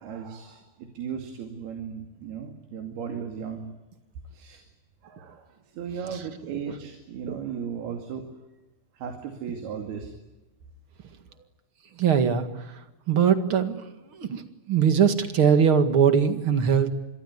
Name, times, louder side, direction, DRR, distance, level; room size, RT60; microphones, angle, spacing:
voice 1, 0.0-3.7 4.3-4.6 5.0-5.5 5.8-8.3 9.0-10.1, right 7 dB, 90° right, 5 dB, 4.4 m, -36 dB
voice 2, 12.0-12.7 13.1-13.9 14.1-16.9, right 7 dB, 45° right, 9 dB, 2.2 m, -22 dB
27.0 x 22.0 x 9.7 m, 1.0 s
omnidirectional pair, 4.3 m